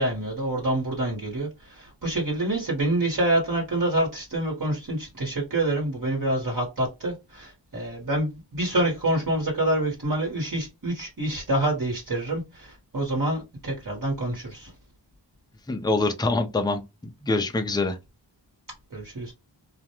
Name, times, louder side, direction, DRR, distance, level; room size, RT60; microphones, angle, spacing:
voice 1, 0.0-14.7 18.9-19.3, right 1 dB, 45° right, 1.2 m, -27 dB
voice 2, 15.7-16.8 17.2-18.0, left 2 dB, 10° left, 0.5 m, -24 dB
2.4 x 2.1 x 2.8 m
wide cardioid pair, 55°, 45 cm